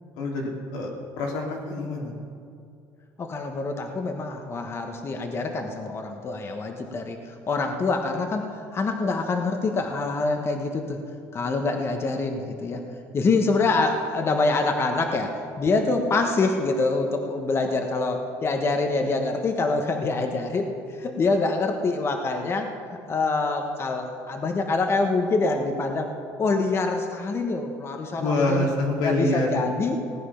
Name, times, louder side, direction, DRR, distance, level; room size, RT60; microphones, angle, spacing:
voice 1, 0.2-2.1 28.2-29.7, left 2 dB, 90° left, -2 dB, 3.1 m, -26 dB
voice 2, 3.2-11.0 11.3-12.8 13.1-22.7 23.1-26.1 26.4-28.7 29.0-30.0, left 3 dB, 30° left, 4 dB, 1.2 m, -25 dB
17.5 x 9.3 x 5.7 m, 2.5 s
cardioid pair, 115°, 8 cm